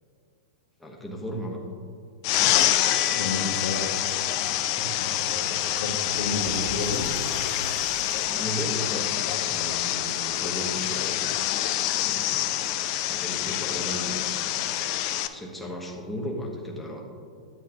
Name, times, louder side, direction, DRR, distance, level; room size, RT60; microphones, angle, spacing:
voice 1, 0.8-1.6 4.5-5.2 8.3-11.4 11.9-12.7 13.1-14.6 15.3-17.1, equal, 5° left, -2 dB, 1.2 m, -36 dB
sound 1, 2.2-15.3, left 13 dB, 45° left, 0.4 m, -26 dB
sound 2, 2.8-8.6 8.9-9.1 9.4-9.6 12.8-12.9, left 4 dB, 30° right, 1.2 m, -44 dB
voice 2, 3.1-3.8 5.0-5.4 5.8-7.1, left 3 dB, 70° left, 0 dB, 1.5 m, -31 dB
sound 3, 4.2-8.7, right 2 dB, 60° right, 0.9 m, -42 dB
9.8 x 7.8 x 2.9 m, 2.3 s
hypercardioid pair, 105°, 4 cm